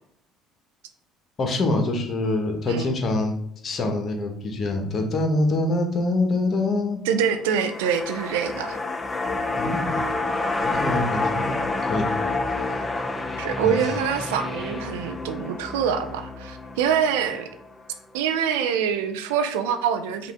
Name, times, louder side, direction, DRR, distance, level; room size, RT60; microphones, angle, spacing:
voice 1, 1.4-3.3 3.6-7.0 9.6-10.0 10.6-11.5 11.8-12.1 12.7-12.8 13.6-13.8, left 2 dB, 45° left, 4 dB, 1.1 m, -25 dB
voice 2, 7.0-8.8 13.4-17.5 18.1-20.3, right 7 dB, 75° right, 8 dB, 0.5 m, -25 dB
sound 1, 7.5-17.9 18.2-18.3, left 3 dB, 25° left, 0.6 m, -28 dB
5.5 x 2.5 x 3.4 m, 0.71 s
hypercardioid pair, 60°, 0 cm